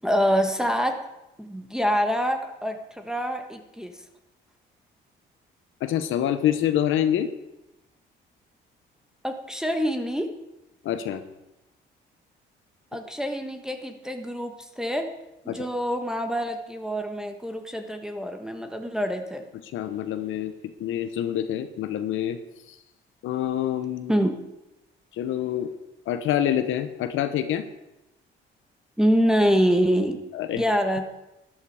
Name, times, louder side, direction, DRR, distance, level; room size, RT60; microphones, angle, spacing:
voice 1, 0.0-1.0 1.4-4.0 9.2-10.3 12.9-15.1 15.4-19.4 24.1-24.4 29.0-30.2 30.6-31.1, equal, 5° right, 4 dB, 1.4 m, -25 dB
voice 2, 5.8-7.3 10.8-11.2 15.5-15.7 19.7-20.5 20.8-22.4 22.7-22.8 23.2-24.1 25.1-25.7 26.1-27.7 30.3-30.6, left 10 dB, 85° left, 9 dB, 1.0 m, -26 dB
13.0 x 11.5 x 4.9 m, 0.93 s
cardioid pair, 90°, 20 cm